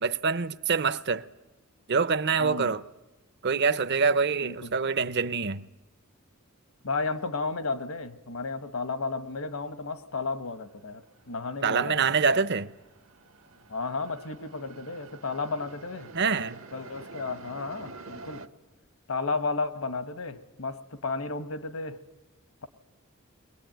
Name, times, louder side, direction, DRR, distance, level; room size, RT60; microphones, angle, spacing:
voice 1, 0.0-1.2 1.9-2.8 3.4-5.6 11.6-12.7 16.1-16.6, right 5 dB, 50° right, 0.7 m, -25 dB
voice 2, 2.4-2.7 4.4-4.7 6.8-12.0 13.7-16.1 16.7-18.4 19.1-22.0, left 3 dB, 75° left, 1.3 m, -33 dB
sound 1, 10.7-10.8 11.1-18.5, right 3 dB, 65° right, 1.0 m, -48 dB
22.0 x 19.5 x 9.1 m
head